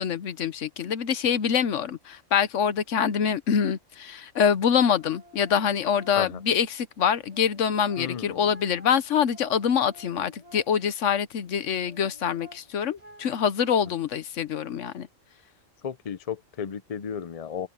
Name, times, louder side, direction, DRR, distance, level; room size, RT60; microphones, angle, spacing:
voice 1, 0.0-15.1, left 7 dB, 70° left, 1.2 m, -25 dB
sound 1, 4.3-6.7 7.1-11.1 11.6-14.0, equal, 30° right, 4.9 m, -52 dB
voice 2, 8.0-8.5 15.8-17.7, left 8 dB, 40° left, 0.5 m, -33 dB
omnidirectional pair, 1.4 m